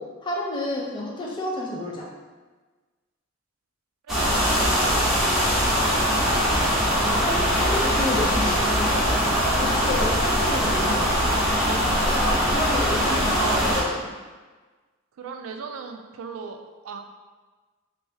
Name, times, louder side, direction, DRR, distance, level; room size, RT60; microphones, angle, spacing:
voice 1, 0.0-2.1 6.9-9.3 9.6-14.1, left 1 dB, 25° left, -3 dB, 0.5 m, -31 dB
sound 1, 4.1-13.8, equal, ahead, 0.8 m, -22 dB
voice 2, 4.1-4.5 13.3-13.7 15.2-17.0, right 6 dB, 80° right, 5 dB, 0.3 m, -37 dB
3.2 x 2.6 x 3.3 m, 1.3 s
head